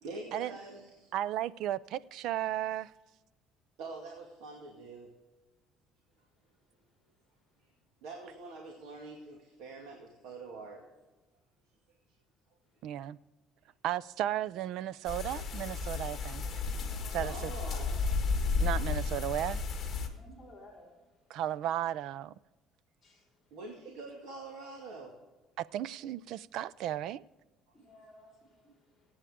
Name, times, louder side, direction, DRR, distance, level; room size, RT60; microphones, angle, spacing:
voice 1, 0.0-1.1 3.8-5.1 7.6-7.7 8.0-10.8 17.1-18.0 23.5-25.2, right 3 dB, 75° right, 2.2 m, -45 dB
voice 2, 1.1-2.9 12.8-13.2 13.8-16.5 17.1-17.5 18.6-19.6 21.3-22.3 25.6-27.2, right 12 dB, 55° right, 0.4 m, -34 dB
sound 1, 15.1-20.1, left 4 dB, 25° left, 1.7 m, -33 dB
voice 3, 16.8-17.2 17.6-18.0 20.1-21.0 23.0-23.2 27.7-28.7, left 1 dB, ahead, 4.0 m, -55 dB
22.5 x 8.8 x 3.6 m
cardioid pair, 175°, 0 cm